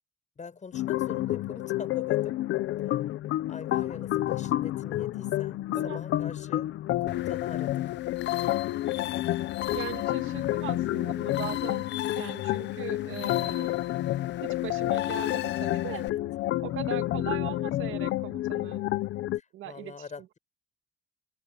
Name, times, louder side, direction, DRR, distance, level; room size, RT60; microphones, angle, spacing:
voice 1, 0.4-2.4 3.5-6.7 7.0-8.0 15.9-16.1 19.4-20.4, left 5 dB, 40° left, 6.8 m, -43 dB
sound 1, 0.7-19.4, left 15 dB, 85° left, 0.9 m, -29 dB
voice 2, 5.7-6.0 6.3-6.4 9.7-11.9 12.1-13.7 14.4-16.0 16.6-18.8 19.5-20.4, right 12 dB, 85° right, 1.9 m, -40 dB
sound 2, 7.1-16.1, left 13 dB, 65° left, 0.4 m, -39 dB
cardioid pair, 90°, 20 cm